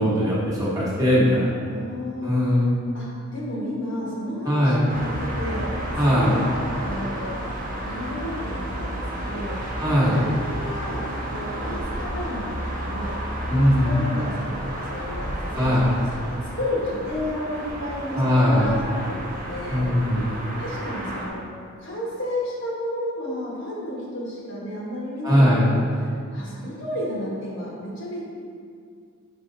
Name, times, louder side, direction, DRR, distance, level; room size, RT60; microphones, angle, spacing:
voice 1, 0.0-1.5 2.2-2.7 4.5-4.9 6.0-6.3 9.8-10.2 13.5-14.0 15.5-15.9 18.2-18.7 19.7-20.3 25.2-25.6, equal, 15° right, -9 dB, 1.2 m, -20 dB
voice 2, 1.6-2.3 2.9-5.7 6.0-6.4 6.8-7.4 7.8-9.5 10.1-11.1 11.3-13.2 13.5-19.8 20.6-21.4 21.8-28.4, left 1 dB, 55° left, -5 dB, 1.4 m, -32 dB
sound 1, 4.9-21.3, equal, 35° right, 0.7 m, -31 dB
5.1 x 4.8 x 3.9 m, 2.2 s
head